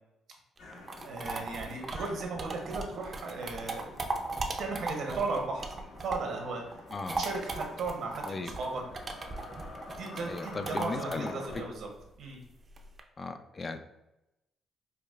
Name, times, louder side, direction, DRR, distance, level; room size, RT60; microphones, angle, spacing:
sound 1, 0.6-11.7, left 2 dB, 70° left, 0.9 m, -47 dB
sound 2, 0.6-6.4 6.7-13.0, right 3 dB, 35° right, 0.5 m, -38 dB
voice 1, 1.0-3.9 4.6-5.7 6.0-6.6 7.2-8.8 10.0-11.9 12.2-12.4, right 3 dB, 70° right, 1 dB, 0.8 m, -36 dB
voice 2, 6.9-7.2 8.2-8.5 10.2-11.6 13.2-13.8, left 3 dB, 35° left, 8 dB, 0.3 m, -37 dB
4.7 x 2.3 x 2.4 m, 0.92 s
cardioid pair, 90°, 0 cm